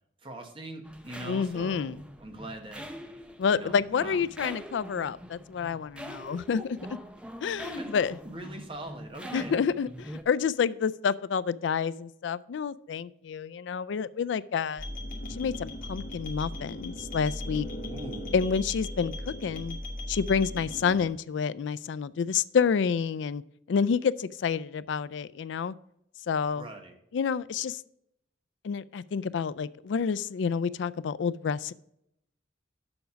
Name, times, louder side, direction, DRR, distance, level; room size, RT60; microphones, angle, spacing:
voice 1, 0.2-2.9 3.5-4.3 6.1-6.7 7.6-7.9 8.2-9.6 17.8-18.5 26.5-27.0, right 1 dB, 30° right, 4 dB, 1.2 m, -42 dB
sound 1, 0.8-10.2, equal, 5° right, 0.6 m, -43 dB
voice 2, 1.3-2.0 3.4-6.6 7.4-8.2 9.3-14.9 15.4-17.7 18.3-19.8 20.1-23.4 23.7-25.8 26.3-26.6 27.1-27.8 28.6-31.7, left 6 dB, 75° left, 18 dB, 0.3 m, -29 dB
sound 2, 14.8-21.1, left 1 dB, 45° left, 1.2 m, -37 dB
7.0 x 5.2 x 6.9 m, 0.77 s
head